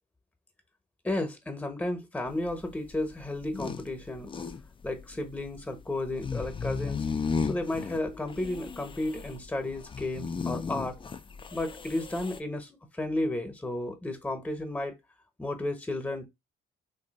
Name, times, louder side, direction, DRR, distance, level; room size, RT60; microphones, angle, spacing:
voice 1, 1.0-4.3 4.8-7.1 7.4-11.0 11.5-15.0 15.4-16.3, left 1 dB, 5° left, 0.9 m, -33 dB
sound 1, 2.3-12.4, left 5 dB, 25° left, 0.4 m, -35 dB
2.9 x 2.7 x 4.0 m
cardioid pair, 90°, 20 cm